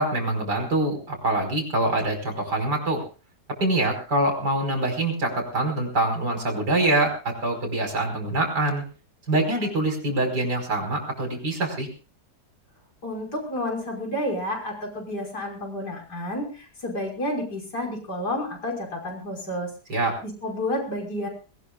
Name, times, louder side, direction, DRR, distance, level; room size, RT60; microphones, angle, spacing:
voice 1, 0.0-3.0 3.6-8.8 9.3-11.9 19.9-20.2, right 2 dB, 85° right, 4 dB, 5.7 m, -25 dB
voice 2, 13.0-19.7 20.2-21.3, left 1 dB, 85° left, 1 dB, 6.2 m, -30 dB
21.5 x 19.0 x 2.4 m, 0.35 s
omnidirectional pair, 1.7 m